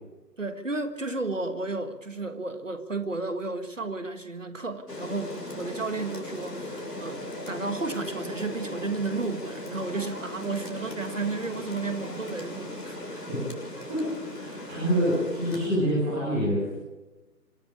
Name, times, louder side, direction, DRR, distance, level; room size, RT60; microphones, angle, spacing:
voice 1, 0.4-13.3, right 3 dB, 50° right, 10 dB, 1.6 m, -33 dB
Rain, 4.9-15.7, left 1 dB, 70° left, 6.6 m, -38 dB
voice 2, 13.9-16.7, equal, 5° right, -8 dB, 1.8 m, -27 dB
25.5 x 14.0 x 8.6 m, 1.1 s
figure-of-eight pair, 165°, 49 cm